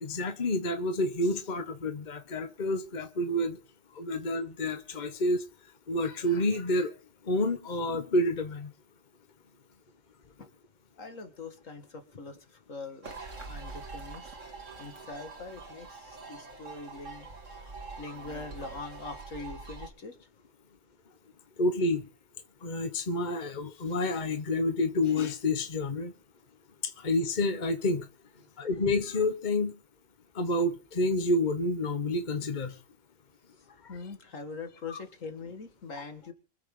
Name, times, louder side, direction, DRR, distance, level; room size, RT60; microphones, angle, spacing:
voice 1, 0.0-3.6 4.0-5.4 5.9-6.9 7.3-8.7 21.6-22.0 22.6-26.1 27.0-28.1 28.6-29.7 30.3-32.7 34.9-35.0, left 1 dB, 35° left, 1.3 m, -29 dB
voice 2, 11.0-14.3 14.8-17.3 17.6-17.7 18.0-20.2 33.9-36.3, left 3 dB, 75° left, 2.3 m, -43 dB
sound 1, 13.0-19.9, right 3 dB, 65° right, 2.8 m, -44 dB
25.0 x 8.3 x 3.9 m
omnidirectional pair, 1.4 m